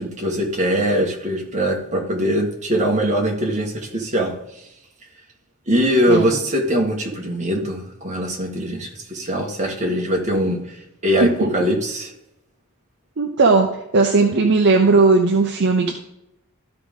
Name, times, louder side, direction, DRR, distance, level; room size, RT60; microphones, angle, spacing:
voice 1, 0.0-4.3 5.7-10.8 11.0-12.1, equal, 35° right, 0 dB, 1.5 m, -22 dB
voice 2, 6.1-6.4 11.2-11.5 13.2-15.9, right 3 dB, 55° right, 3 dB, 0.7 m, -17 dB
13.0 x 4.9 x 3.7 m, 0.84 s
head